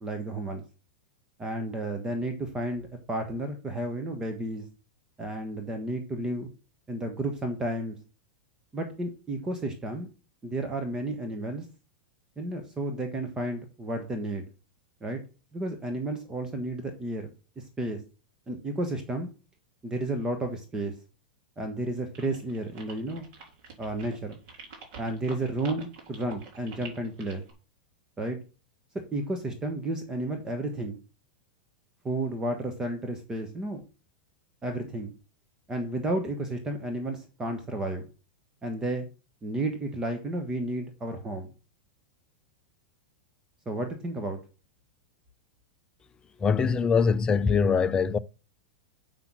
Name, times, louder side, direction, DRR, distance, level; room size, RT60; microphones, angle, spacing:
voice 1, 0.0-0.6 1.4-4.7 5.2-6.5 6.9-8.0 8.7-10.1 10.4-11.6 12.4-14.4 15.0-15.2 15.5-17.3 17.6-18.0 18.5-19.3 19.8-20.9 21.6-23.3 23.8-24.4 25.0-27.4 28.2-28.4 29.1-31.0 32.0-33.8 34.6-35.1 35.7-38.0 38.6-39.1 39.4-41.5 43.6-44.4, right 1 dB, 15° right, 1.3 m, -32 dB
sound 1, 22.1-27.5, right 5 dB, 45° right, 3.7 m, -46 dB
voice 2, 46.4-48.2, left 5 dB, 20° left, 0.5 m, -23 dB
6.9 x 6.0 x 6.0 m
hypercardioid pair, 130°, 5 cm